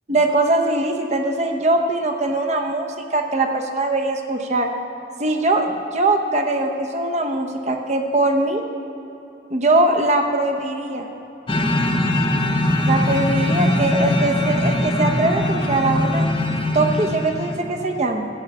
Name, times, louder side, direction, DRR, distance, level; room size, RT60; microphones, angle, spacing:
voice 1, 0.1-4.7 5.2-8.6 9.5-11.1 12.9-16.3 16.7-18.3, right 2 dB, 40° right, 4 dB, 0.9 m, -21 dB
sound 1, 11.5-17.7, left 1 dB, 25° left, 0.8 m, -21 dB
13.5 x 5.6 x 8.3 m, 3.0 s
head